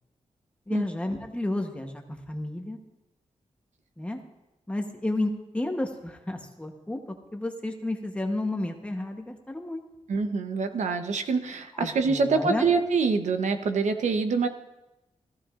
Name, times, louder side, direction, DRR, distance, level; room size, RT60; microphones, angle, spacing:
voice 1, 0.7-2.0 2.3-2.8 4.0-4.2 4.7-9.8 11.7-12.7, left 1 dB, 10° left, 3 dB, 1.0 m, -31 dB
voice 2, 10.1-14.5, right 4 dB, 75° right, 7 dB, 0.9 m, -25 dB
17.5 x 14.5 x 2.5 m, 0.98 s
wide cardioid pair, 180°, 12 cm